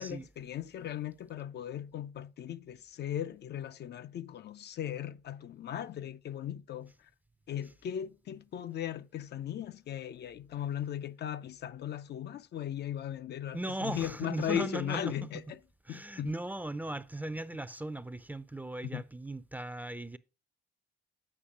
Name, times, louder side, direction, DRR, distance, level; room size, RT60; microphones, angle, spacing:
voice 1, 0.0-7.1 7.5-15.6 15.9-16.3 18.9-19.0, left 10 dB, 60° left, 0.5 m, -37 dB
voice 2, 13.5-15.3 15.9-20.2, right 1 dB, 10° right, 0.5 m, -38 dB
8.7 x 5.1 x 4.9 m
cardioid pair, 90°, 20 cm